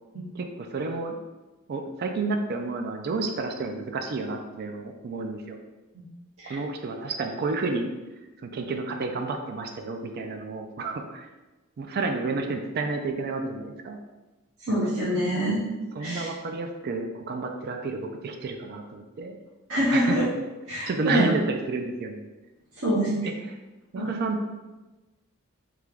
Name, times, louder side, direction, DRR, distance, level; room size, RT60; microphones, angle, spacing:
voice 1, 0.3-1.1 1.7-5.6 6.4-7.9 8.4-11.3 11.8-14.0 14.7-14.8 16.0-19.4 19.9-20.2 20.9-22.2 23.9-24.4, right 3 dB, 50° right, 4 dB, 0.4 m, -30 dB
voice 2, 14.6-15.6 16.0-16.3 19.7-20.2 20.7-21.3 22.8-23.2 24.0-24.1, equal, 80° right, -8 dB, 0.9 m, -25 dB
3.2 x 2.9 x 3.6 m, 1.1 s
head